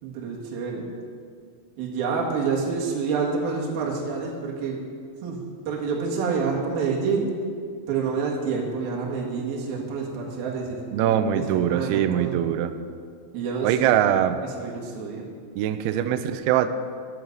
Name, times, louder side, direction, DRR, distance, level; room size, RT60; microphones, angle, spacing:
voice 1, 0.0-0.9 1.8-4.8 5.2-7.3 7.9-12.4 13.3-13.9 14.4-15.3, right 5 dB, 60° right, -2 dB, 3.2 m, -28 dB
voice 2, 10.9-12.7 13.6-14.4 15.6-16.7, right 10 dB, 85° right, 10 dB, 2.9 m, -22 dB
12.5 x 7.9 x 6.6 m, 2.1 s
omnidirectional pair, 5.4 m